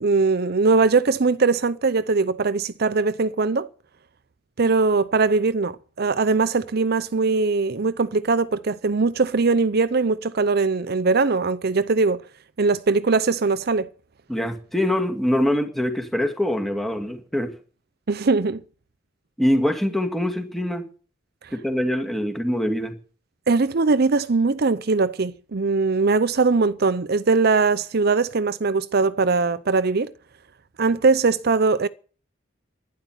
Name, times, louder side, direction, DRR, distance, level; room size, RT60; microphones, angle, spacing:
voice 1, 0.0-3.7 4.6-12.2 12.6-13.9 18.1-18.6 23.5-30.1 30.8-31.9, right 4 dB, 55° right, 0.7 m, -21 dB
voice 2, 14.3-17.5 19.4-20.8 21.5-23.0, left 1 dB, ahead, 2.1 m, -24 dB
12.0 x 10.5 x 9.8 m
head